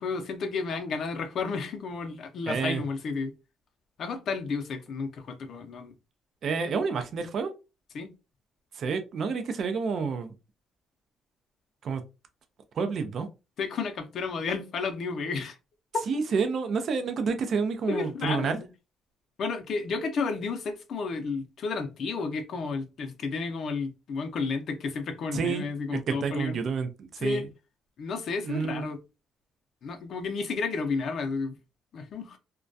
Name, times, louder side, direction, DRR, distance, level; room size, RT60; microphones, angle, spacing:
voice 1, 0.0-3.3 4.0-5.9 7.9-8.1 13.6-15.6 17.9-18.7 19.4-26.6 27.2-27.5 28.0-29.0 29.8-31.5 31.9-32.4, left 4 dB, 65° left, 0.5 m, -32 dB
voice 2, 2.5-2.8 6.4-7.5 8.8-10.3 11.8-12.0 12.8-13.3 16.1-18.6 25.3-25.7 25.9-27.5 28.4-28.9, right 5 dB, 60° right, 0.4 m, -29 dB
2.2 x 2.2 x 2.5 m
cardioid pair, 90°, 0 cm